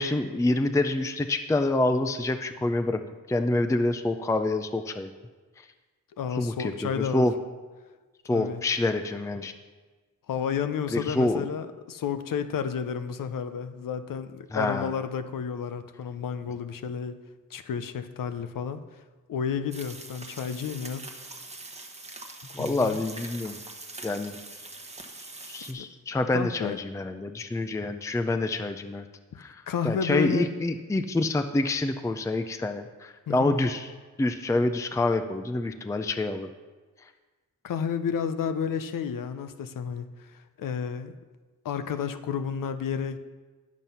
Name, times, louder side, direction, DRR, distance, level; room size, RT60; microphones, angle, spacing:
voice 1, 0.0-3.0 3.3-5.1 6.3-7.3 8.3-9.5 10.9-11.5 14.5-14.9 22.5-23.6 24.0-24.3 25.4-29.0 29.4-33.9 34.2-36.5, left 2 dB, 10° left, 8 dB, 0.5 m, -27 dB
voice 2, 6.2-7.3 8.3-8.6 10.3-17.2 17.5-18.8 19.3-21.1 22.6-23.0 25.8-25.9 26.3-26.8 29.7-30.5 33.3-33.6 37.6-41.1 41.6-43.2, left 7 dB, 75° left, 11 dB, 0.7 m, -31 dB
sound 1, 19.7-25.7, right 2 dB, 20° right, 1.1 m, -43 dB
9.2 x 7.3 x 5.6 m, 1.3 s
cardioid pair, 75°, 33 cm